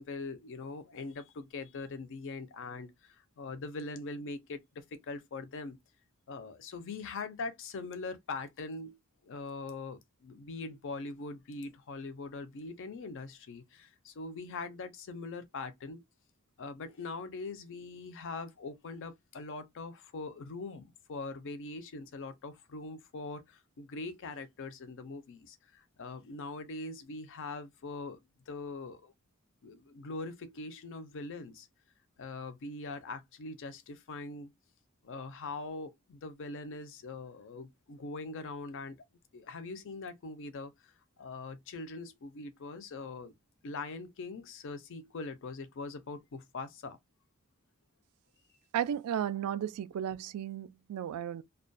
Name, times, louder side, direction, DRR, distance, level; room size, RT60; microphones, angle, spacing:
voice 1, 0.0-5.8 6.3-16.0 16.6-28.2 28.5-29.1 29.6-31.7 32.2-34.5 35.0-39.0 39.3-43.3 43.6-47.0, left 3 dB, 60° left, 0.5 m, -42 dB
voice 2, 48.7-51.4, right 9 dB, 90° right, 0.3 m, -34 dB
2.3 x 2.1 x 2.5 m
head